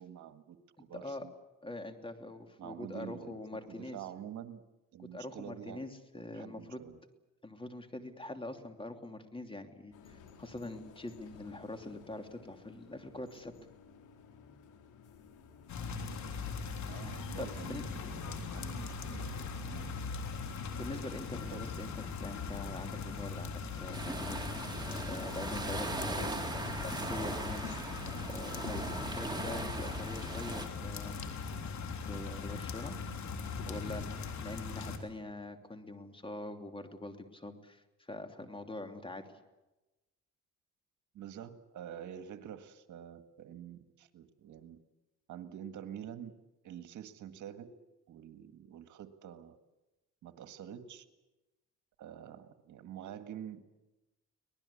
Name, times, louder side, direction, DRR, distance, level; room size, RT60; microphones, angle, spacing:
voice 1, 0.0-1.3 2.6-3.4 3.7-4.6 4.9-5.9 6.3-7.0 16.9-20.0 21.5-21.6 41.1-44.8 45.3-46.3 46.6-47.8 48.1-49.6 50.2-51.0 52.0-53.8, right 9 dB, 75° right, 9 dB, 1.8 m, -47 dB
voice 2, 0.9-1.3 1.6-4.0 5.0-6.8 7.4-13.5 17.0-17.8 20.8-24.8 25.1-26.4 26.7-27.8 28.3-31.2 32.1-32.9 33.7-39.4, left 2 dB, 15° left, 6 dB, 3.0 m, -44 dB
sound 1, 9.9-26.3, left 6 dB, 85° left, 3.5 m, -56 dB
sound 2, 15.7-35.0, left 5 dB, 70° left, 3.6 m, -40 dB
sound 3, 23.9-30.7, right 2 dB, 15° right, 3.7 m, -39 dB
25.0 x 19.0 x 8.5 m, 1.0 s
cardioid pair, 90°, 30 cm